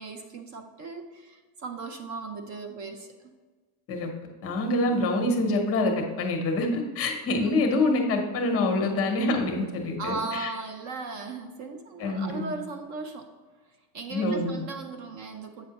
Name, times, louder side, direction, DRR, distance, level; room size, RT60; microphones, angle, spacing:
voice 1, 0.0-3.1 10.0-13.3 13.9-15.7, right 3 dB, 40° right, 5 dB, 0.5 m, -37 dB
voice 2, 4.4-10.5 12.0-12.4 14.1-14.6, left 2 dB, 30° left, 3 dB, 0.8 m, -26 dB
7.9 x 5.2 x 2.8 m, 1.4 s
cardioid pair, 165°, 43 cm